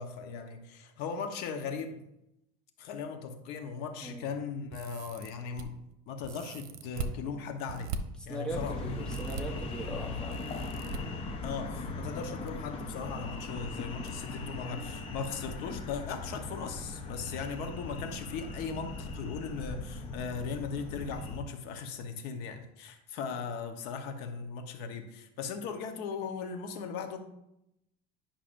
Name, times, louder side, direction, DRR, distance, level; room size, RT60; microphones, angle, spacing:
voice 1, 0.0-2.0 2.8-5.8 6.1-7.9 8.3-8.8 11.4-27.2, left 5 dB, 60° left, 6 dB, 0.9 m, -38 dB
sound 1, 4.7-5.6 6.2-7.1 7.7-8.0 9.1-9.4 10.3-11.0 12.1-12.5 12.8-12.9 14.1-14.2 14.5-14.7, right 5 dB, 90° right, 0.8 m, -40 dB
voice 2, 8.3-10.4, right 1 dB, 5° left, 0 dB, 0.9 m, -39 dB
sound 2, 8.5-21.4, left 2 dB, 30° left, 0.8 m, -39 dB
10.0 x 5.8 x 2.5 m, 0.83 s
cardioid pair, 160°, 19 cm